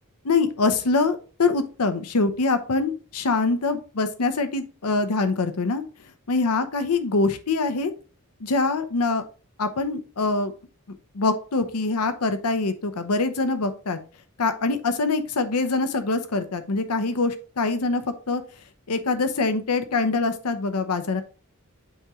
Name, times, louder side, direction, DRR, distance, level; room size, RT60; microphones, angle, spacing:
voice 1, 0.2-5.8 6.3-7.9 8.4-9.2 9.6-10.5 10.9-14.0 14.4-18.4 18.9-21.2, left 3 dB, 85° left, 10 dB, 0.8 m, -24 dB
8.5 x 3.6 x 3.1 m, 0.36 s
head